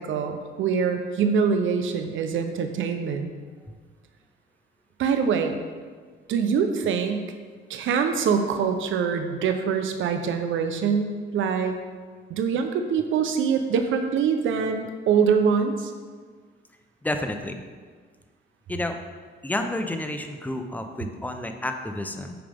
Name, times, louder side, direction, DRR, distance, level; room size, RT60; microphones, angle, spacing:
voice 1, 0.0-3.3 5.0-5.6 6.3-7.2 7.7-11.8 12.3-15.9, right 6 dB, 75° right, 6 dB, 0.7 m, -24 dB
voice 2, 17.0-17.6 18.7-19.0 19.4-22.4, left 1 dB, 10° left, 6 dB, 0.7 m, -30 dB
8.9 x 5.1 x 3.5 m, 1.6 s
cardioid pair, 90°, 20 cm